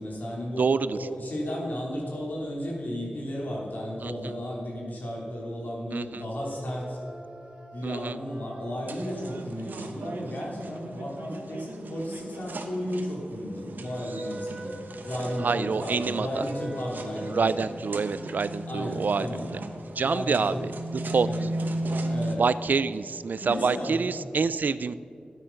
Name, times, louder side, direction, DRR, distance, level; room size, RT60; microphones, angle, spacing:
voice 1, 0.0-7.0 7.7-14.8 15.0-17.5 18.7-19.5 20.0-20.6 21.2-21.5 22.1-22.4 22.8-22.9 23.4-24.1, equal, 75° left, -3 dB, 3.0 m, -34 dB
voice 2, 0.6-1.0 4.0-4.1 5.9-6.2 7.8-8.2 15.4-16.4 17.3-19.5 20.0-21.3 22.4-24.9, right 5 dB, 70° right, 15 dB, 0.4 m, -27 dB
sound 1, 6.4-11.3 13.3-17.6, right 1 dB, 30° right, 2.2 m, -42 dB
sound 2, 8.8-22.3, right 1 dB, 90° right, 0.9 m, -36 dB
12.5 x 9.2 x 5.8 m, 2.5 s
wide cardioid pair, 85°, 3 cm